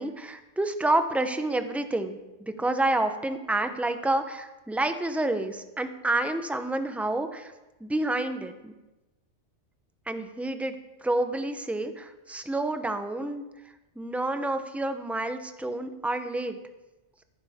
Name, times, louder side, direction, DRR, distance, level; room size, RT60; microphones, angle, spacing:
voice 1, 0.0-7.5 7.8-8.7 10.1-10.7 11.0-13.5 14.0-16.6, right 2 dB, ahead, 8 dB, 0.4 m, -29 dB
14.5 x 11.0 x 3.6 m, 1.1 s
omnidirectional pair, 1.2 m